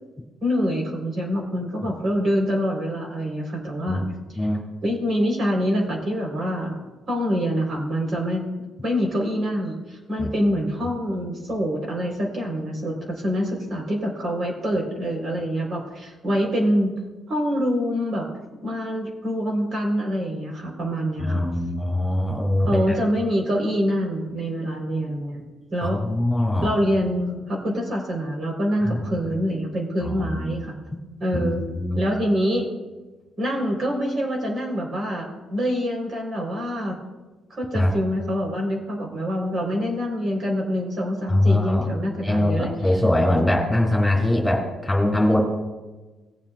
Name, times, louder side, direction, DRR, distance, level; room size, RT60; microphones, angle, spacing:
voice 1, 0.4-4.4 4.8-8.5 8.8-16.9 17.3-18.3 18.6-21.4 22.7-25.4 25.7-26.0 26.6-30.7 31.2-31.6 32.0-32.7 33.4-37.0 37.5-42.9, equal, 50° right, 0 dB, 3.6 m, -25 dB
voice 2, 21.2-22.9 25.8-26.7 28.8-29.1 30.0-30.5 31.3-32.0 37.7-37.9 41.3-41.9 42.2-45.4, left 1 dB, 10° left, 0 dB, 3.3 m, -22 dB
20.5 x 7.3 x 2.4 m, 1.2 s
cardioid pair, 90°, 0 cm